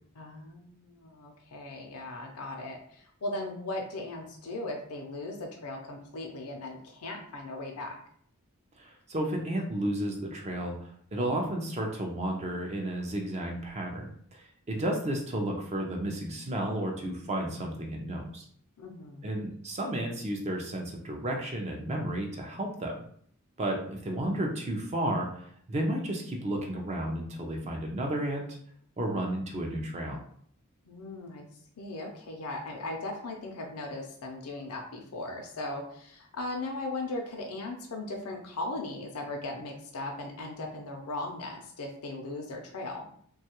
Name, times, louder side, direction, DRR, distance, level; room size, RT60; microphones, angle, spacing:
voice 1, 0.2-8.0 18.8-19.4 30.9-31.5 31.8-43.1, left 2 dB, 80° left, 1 dB, 0.5 m, -38 dB
voice 2, 8.8-18.5 19.2-22.9 23.6-28.4 29.0-30.2, right 1 dB, 30° right, 1 dB, 0.4 m, -32 dB
3.0 x 2.3 x 2.9 m, 0.62 s
head